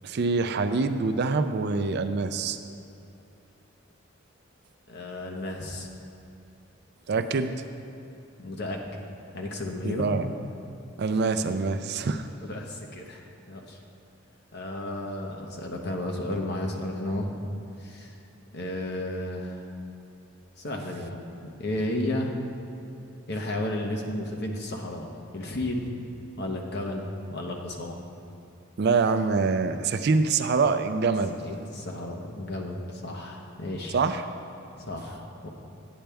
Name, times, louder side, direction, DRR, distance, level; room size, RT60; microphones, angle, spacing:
voice 1, 0.0-2.6 7.1-7.5 9.8-10.3 11.0-12.3 28.8-31.4 33.9-34.2, right 4 dB, 55° right, 9 dB, 0.4 m, -25 dB
voice 2, 4.9-5.9 8.4-9.0 9.3-10.2 12.4-13.8 14.5-17.4 17.8-18.2 18.5-19.7 20.6-22.3 23.3-25.1 25.3-25.9 26.4-28.0 31.4-34.0 34.8-35.5, left 1 dB, 60° left, 1 dB, 1.0 m, -33 dB
10.0 x 8.8 x 3.4 m, 2.7 s
head